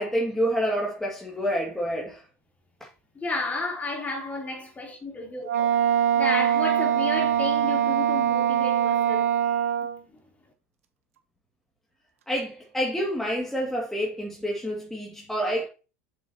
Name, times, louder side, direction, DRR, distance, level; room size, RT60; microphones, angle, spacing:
voice 1, 0.0-2.2 2.8-2.9 12.3-15.7, equal, 5° left, 2.2 m, -28 dB
voice 2, 3.2-5.7 6.2-9.3, left 3 dB, 20° left, 3.4 m, -32 dB
Wind instrument woodwind instrument, 5.4-10.0, right 10 dB, 85° right, 1.2 m, -23 dB
7.4 x 7.0 x 2.9 m
hypercardioid pair, 95°, 7 cm